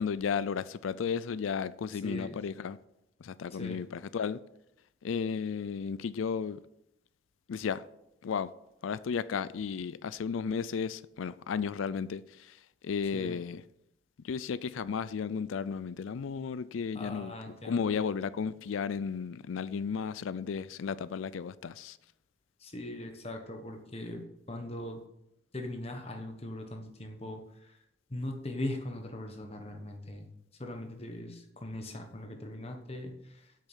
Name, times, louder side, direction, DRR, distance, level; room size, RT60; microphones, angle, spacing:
voice 1, 0.0-2.8 3.2-4.4 5.0-6.6 7.5-7.8 8.2-8.5 8.8-13.6 14.2-22.0, left 6 dB, 85° left, 0.4 m, -34 dB
voice 2, 1.9-2.4 3.6-3.8 13.1-13.4 16.9-17.9 22.6-24.2 24.5-25.0 25.5-27.8 28.1-30.3 30.6-33.7, left 1 dB, 30° left, 1.1 m, -40 dB
8.3 x 6.6 x 8.0 m
head